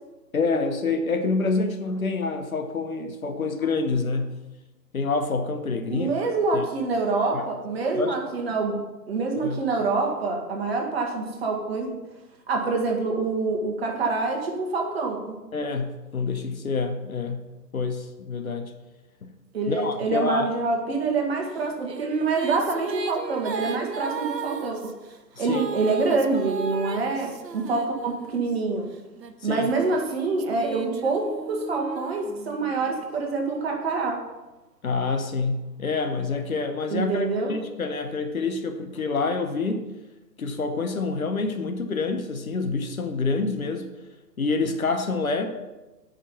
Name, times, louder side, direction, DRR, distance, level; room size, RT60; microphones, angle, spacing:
voice 1, 0.3-4.3 4.9-6.1 6.5-6.7 7.3-7.4 7.9-8.2 9.4-9.6 15.5-17.5 17.7-18.7 19.2-19.3 19.7-20.5 25.4-25.6 29.4-29.7 34.8-39.8 40.4-43.9 44.4-45.5, left 4 dB, 55° left, 6 dB, 1.1 m, -27 dB
voice 2, 5.9-8.8 9.1-12.0 12.5-15.4 19.5-24.9 25.4-28.9 29.4-34.2 36.9-37.5, right 3 dB, 35° right, 1 dB, 1.8 m, -26 dB
sound 1, 21.6-28.5 29.2-32.9, right 5 dB, 75° right, 0.9 m, -35 dB
7.3 x 5.6 x 7.0 m, 1.1 s
figure-of-eight pair, 135°, 50 cm